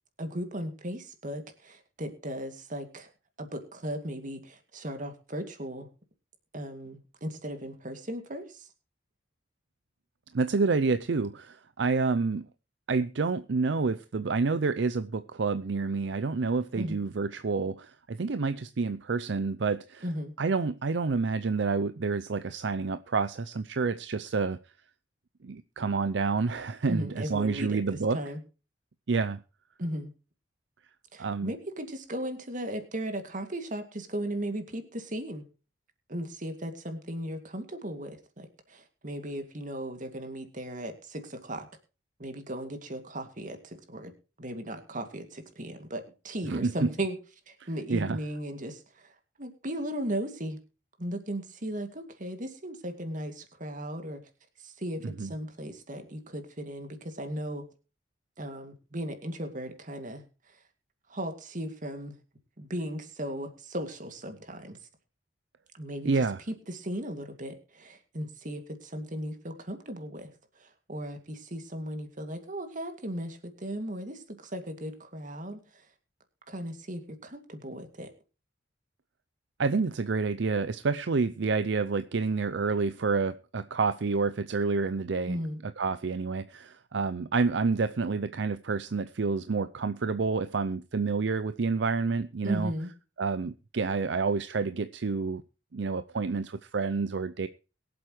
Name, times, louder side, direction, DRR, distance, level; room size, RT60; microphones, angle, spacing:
voice 1, 0.2-3.1 3.4-5.9 6.5-8.7 16.7-17.0 20.0-20.3 26.9-28.4 29.8-30.1 31.1-35.4 36.1-41.7 42.2-44.1 44.4-47.2 47.5-49.1 49.4-50.6 51.0-54.2 54.6-57.6 58.4-60.6 61.1-62.2 62.6-64.8 65.7-70.3 70.6-75.9 76.5-78.1 85.3-85.6 92.4-92.9, right 1 dB, 45° right, 2.3 m, -36 dB
voice 2, 10.3-12.5 12.9-20.0 20.4-24.6 25.4-28.2 29.1-29.4 31.2-31.5 46.5-46.9 47.9-48.2 55.0-55.3 66.0-66.4 79.6-85.4 85.8-92.7 93.2-95.4 95.7-97.5, right 4 dB, 65° right, 0.5 m, -28 dB
22.5 x 7.9 x 3.2 m
head